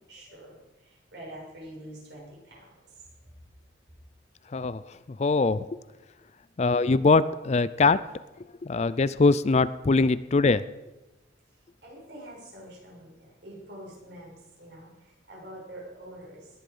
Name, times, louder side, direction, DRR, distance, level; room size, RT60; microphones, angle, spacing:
voice 1, 0.1-0.6 1.1-2.6 11.8-14.9 15.3-16.5, right 1 dB, 65° right, -3 dB, 7.1 m, -45 dB
voice 2, 4.5-5.6 6.6-8.0 8.6-10.6, left 3 dB, 35° left, 16 dB, 0.4 m, -22 dB
19.0 x 11.0 x 5.5 m, 1.1 s
head